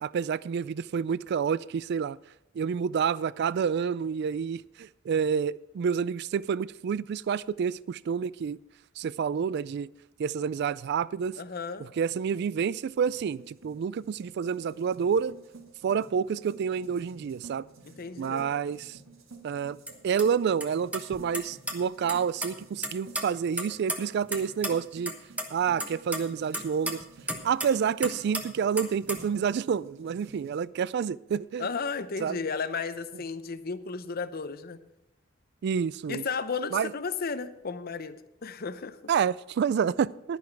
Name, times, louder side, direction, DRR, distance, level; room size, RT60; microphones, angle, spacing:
voice 1, 0.0-2.2 2.5-8.6 9.0-9.9 10.2-11.4 11.8-15.3 15.8-17.7 18.2-19.0 19.4-19.8 20.0-25.1 25.5-27.0 27.4-31.7 32.2-32.4 35.6-36.2 36.7-36.9 39.1-40.4, right 7 dB, 55° right, 0.3 m, -28 dB
voice 2, 11.4-11.9 17.8-18.4 31.6-34.8 36.1-39.0, left 5 dB, 45° left, 0.7 m, -34 dB
sound 1, 12.3-30.6, right 3 dB, 75° right, 1.7 m, -52 dB
sound 2, 19.9-20.0 20.2-20.3 20.6-20.7 20.9-21.7 22.1-22.5 22.8-24.4 24.6-24.7 25.1-25.4 25.8-27.7 28.0-28.4 28.8-29.3, right 1 dB, 5° right, 1.1 m, -32 dB
10.5 x 10.5 x 4.6 m
head